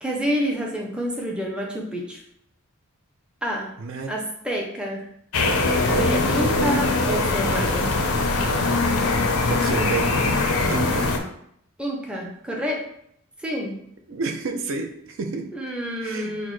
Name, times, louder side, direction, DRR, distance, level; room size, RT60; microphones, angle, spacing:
voice 1, 0.0-2.2 3.4-3.7 4.1-5.1 5.9-7.9 11.8-12.8 13.4-13.7 15.5-16.5, equal, 5° right, -1 dB, 0.5 m, -28 dB
voice 2, 3.8-4.1 6.4-6.8 9.5-10.2 10.7-11.1 14.1-15.5 16.0-16.4, right 4 dB, 60° right, 4 dB, 0.4 m, -30 dB
sound 1, 5.3-11.2, left 3 dB, 90° left, 0.6 m, -22 dB
5.8 x 2.0 x 3.1 m, 0.72 s
head